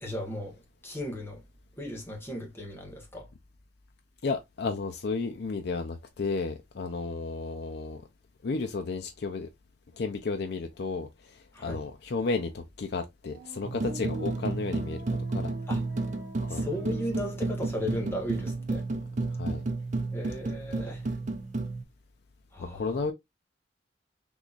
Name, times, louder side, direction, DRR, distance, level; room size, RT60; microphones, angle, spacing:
voice 1, 0.0-1.4 1.8-3.3 11.5-11.9 15.7-15.8 16.5-18.8 20.1-21.1 22.5-23.1, left 1 dB, 15° left, 1.2 m, -36 dB
voice 2, 4.2-8.0 8.4-9.5 10.0-11.1 11.6-15.0 15.3-15.5 16.5-16.7 19.4-19.6 22.6-23.1, left 4 dB, 65° left, 0.5 m, -32 dB
sound 1, 13.3-20.2 20.4-21.2, right 1 dB, 75° right, 1.0 m, -48 dB
sound 2, 13.6-21.8, right 3 dB, 40° right, 0.5 m, -32 dB
3.8 x 2.9 x 2.4 m
head